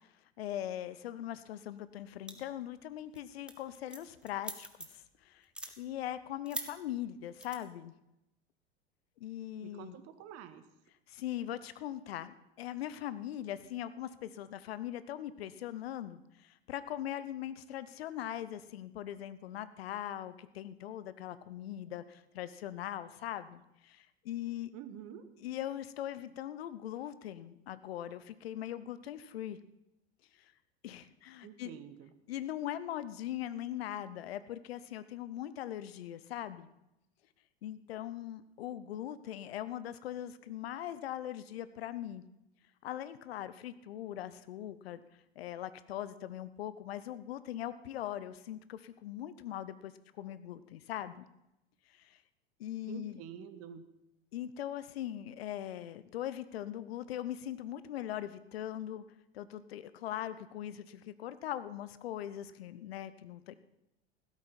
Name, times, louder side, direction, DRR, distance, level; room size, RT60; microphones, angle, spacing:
voice 1, 0.4-7.9 9.2-10.0 11.1-24.7 25.4-29.6 30.8-31.7 32.3-36.7 37.6-42.2 42.8-45.0 45.4-49.9 50.2-51.3 51.9-52.2 52.6-53.2 54.3-59.0 59.3-63.6, left 12 dB, 70° left, 14 dB, 0.8 m, -41 dB
sound 1, 2.3-2.6 3.0-3.2 3.5-5.1 5.4-5.7 6.5-6.7 7.4-7.6, right 1 dB, 5° right, 1.6 m, -41 dB
voice 2, 9.6-10.6 24.7-25.3 31.4-32.1 52.9-53.8, right 9 dB, 50° right, 11 dB, 1.5 m, -48 dB
16.0 x 13.0 x 4.3 m, 0.86 s
figure-of-eight pair, 80°, 32 cm